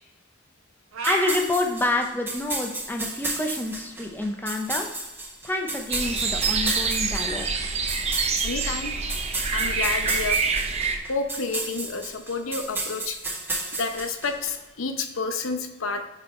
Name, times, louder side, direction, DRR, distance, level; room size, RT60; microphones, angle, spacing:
sound 1, 0.9-1.4, right 4 dB, 85° right, 0.9 m, -28 dB
voice 1, 1.0-4.9 5.4-7.7, left 2 dB, 10° left, 2 dB, 0.6 m, -28 dB
sound 2, 1.0-14.5, right 2 dB, 10° right, 0.9 m, -33 dB
sound 3, 5.9-11.0, right 5 dB, 30° right, 0.6 m, -26 dB
voice 2, 8.4-9.0 9.5-10.4 11.1-13.2 13.8-16.0, left 4 dB, 85° left, 7 dB, 0.8 m, -30 dB
8.4 x 4.7 x 3.1 m, 1.1 s
head